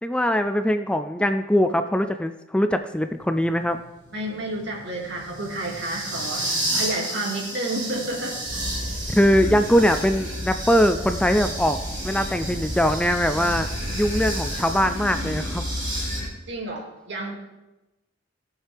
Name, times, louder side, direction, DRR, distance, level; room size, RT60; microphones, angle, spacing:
voice 1, 0.0-3.8 9.1-11.8 12.0-13.7 13.9-15.6, equal, 5° left, 8 dB, 0.3 m, -21 dB
sound 1, 3.1-16.2, right 1 dB, 25° right, 4.2 m, -33 dB
voice 2, 4.1-8.4 16.5-17.3, right 1 dB, 65° right, -1 dB, 2.4 m, -30 dB
sound 2, 8.5-16.3, equal, 65° left, 3.3 m, -32 dB
17.5 x 7.3 x 3.4 m, 1.0 s
head